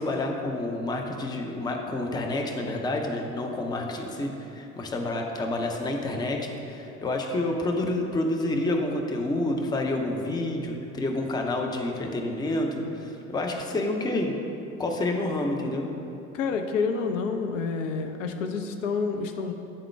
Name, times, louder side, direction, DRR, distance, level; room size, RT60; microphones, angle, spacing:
voice 1, 0.0-14.3 14.8-15.9, left 2 dB, 10° left, 2 dB, 0.5 m, -29 dB
voice 2, 16.3-19.5, left 5 dB, 65° left, 6 dB, 0.5 m, -28 dB
9.6 x 3.7 x 3.3 m, 2.9 s
figure-of-eight pair, 65°, 40 cm